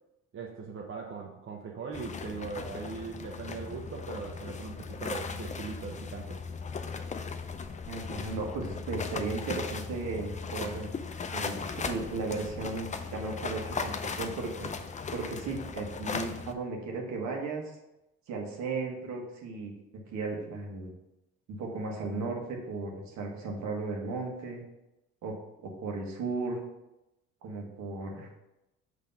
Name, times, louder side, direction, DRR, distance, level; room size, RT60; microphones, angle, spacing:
voice 1, 0.3-6.4, right 5 dB, 45° right, 0 dB, 0.8 m, -40 dB
sound 1, 1.9-16.5, left 5 dB, 25° left, 0.5 m, -37 dB
voice 2, 7.9-10.9 11.3-14.7 15.1-17.6 18.3-19.7 20.1-20.9 21.5-24.6 25.2-25.4 25.6-26.6 27.4-28.3, right 3 dB, 70° right, 0 dB, 1.6 m, -35 dB
5.6 x 3.4 x 5.6 m, 0.92 s
supercardioid pair, 80°, 29 cm